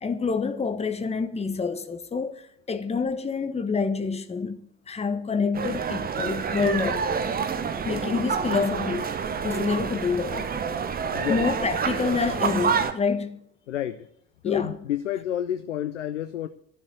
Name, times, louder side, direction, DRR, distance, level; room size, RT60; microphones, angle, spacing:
voice 1, 0.0-2.4 2.7-7.0 7.8-9.1 9.4-10.5 11.3-13.4 14.4-14.8, left 5 dB, 15° left, 1.2 m, -27 dB
sound 1, 5.5-12.9, right 6 dB, 25° right, 1.0 m, -28 dB
voice 2, 11.1-11.4 13.7-14.1 14.4-16.5, left 11 dB, 70° left, 0.7 m, -29 dB
12.5 x 7.3 x 7.8 m
figure-of-eight pair, 65°, 37 cm